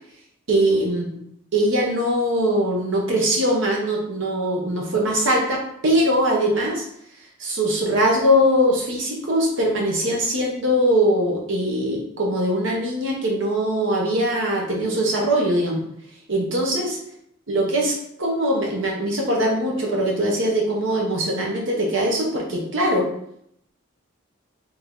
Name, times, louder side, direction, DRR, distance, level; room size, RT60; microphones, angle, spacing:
voice 1, 0.5-1.1 1.5-6.8 7.4-15.8 16.3-17.0 17.5-23.1, equal, 60° right, -1 dB, 0.9 m, -21 dB
3.4 x 2.7 x 3.6 m, 0.73 s
head